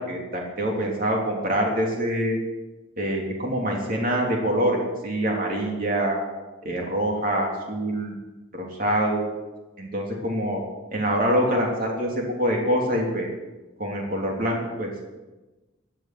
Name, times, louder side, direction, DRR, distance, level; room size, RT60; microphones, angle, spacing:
voice 1, 0.0-2.4 3.0-6.2 6.6-8.1 8.5-9.3 9.8-10.6 10.9-13.3 13.8-15.0, right 1 dB, 45° right, -1 dB, 3.1 m, -25 dB
16.0 x 10.5 x 6.0 m, 1.1 s
head